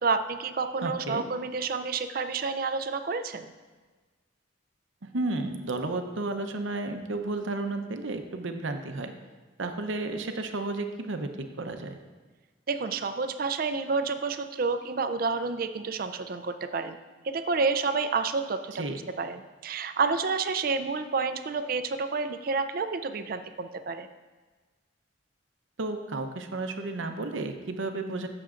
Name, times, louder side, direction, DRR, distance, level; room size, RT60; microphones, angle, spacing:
voice 1, 0.0-3.5 12.7-17.0 17.2-18.8 19.2-24.1, right 4 dB, 45° right, 9 dB, 0.4 m, -29 dB
voice 2, 0.8-1.2 5.0-9.1 9.6-12.0 18.7-19.0 25.8-28.3, right 2 dB, 75° right, 6 dB, 0.8 m, -32 dB
15.0 x 6.8 x 2.5 m, 1.3 s
head